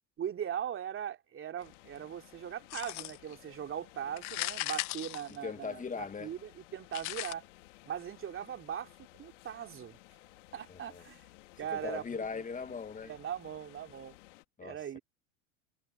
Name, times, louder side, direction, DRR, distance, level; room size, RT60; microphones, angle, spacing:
voice 1, 0.2-7.4 7.8-8.9 9.2-10.0 10.5-11.2 11.6-12.2 13.0-14.2 14.6-15.0, right 9 dB, 35° right, 3.2 m, -40 dB
sound 1, 1.6-14.4, left 19 dB, 70° left, 3.4 m, -57 dB
sound 2, 2.7-3.4 4.1-5.9 6.9-7.3, left 21 dB, 50° left, 1.1 m, -37 dB
voice 2, 5.4-6.3 10.7-11.0 11.7-13.1 14.6-14.8, left 5 dB, 20° left, 1.6 m, -39 dB
hypercardioid pair, 85°, 38 cm